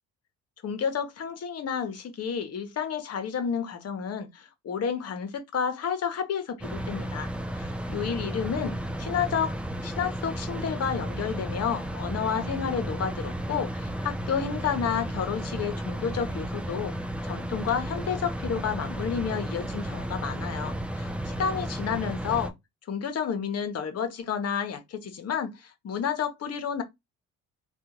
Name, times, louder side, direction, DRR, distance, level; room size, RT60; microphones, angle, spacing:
voice 1, 0.6-9.6 9.8-16.9 17.2-22.5 22.9-26.8, left 7 dB, 55° left, 1.0 m, -31 dB
sound 1, 6.6-22.5, right 1 dB, 5° right, 0.5 m, -33 dB
3.5 x 2.4 x 2.9 m
cardioid pair, 90°, 30 cm